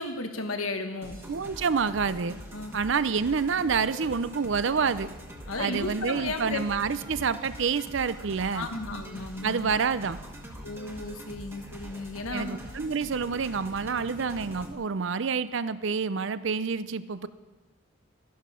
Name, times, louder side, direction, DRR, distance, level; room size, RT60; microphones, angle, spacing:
voice 1, 0.0-1.2 2.5-2.8 5.5-6.6 8.5-9.7 10.6-12.6, left 2 dB, 90° left, 6 dB, 1.4 m, -34 dB
sound 1, 1.0-14.7, equal, 10° right, 1.4 m, -43 dB
voice 2, 1.3-2.4 2.7-5.1 5.6-8.7 9.4-10.2 12.3-17.3, right 5 dB, 60° right, 15 dB, 0.5 m, -28 dB
13.5 x 11.0 x 5.7 m, 1.2 s
head